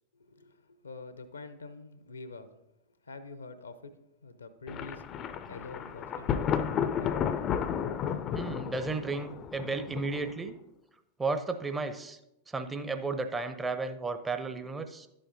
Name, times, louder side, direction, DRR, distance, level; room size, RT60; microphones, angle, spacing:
voice 1, 0.1-2.5 3.0-3.9 4.2-5.0 5.5-7.7, left 3 dB, 75° left, 11 dB, 0.6 m, -46 dB
Thunder, 4.7-10.5, left 8 dB, 30° left, 0.4 m, -33 dB
voice 2, 8.3-10.5 11.2-12.2 12.5-15.1, right 3 dB, 15° right, 9 dB, 0.6 m, -33 dB
11.0 x 7.5 x 2.6 m, 0.86 s
figure-of-eight pair, 90°, 0 cm